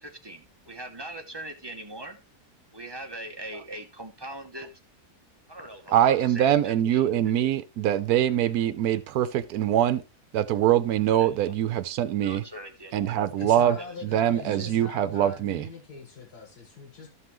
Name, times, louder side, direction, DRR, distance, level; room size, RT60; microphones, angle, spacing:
voice 1, 0.0-2.2 2.7-4.7 5.5-7.3 11.1-11.5 12.2-13.2 13.6-14.2, right 1 dB, 20° right, 0.7 m, -41 dB
voice 2, 5.9-10.0 10.3-12.4 12.9-13.8 14.0-15.6, right 11 dB, 75° right, 1.2 m, -23 dB
voice 3, 13.4-17.1, left 4 dB, 90° left, 2.3 m, -42 dB
13.0 x 5.7 x 3.0 m
omnidirectional pair, 1.6 m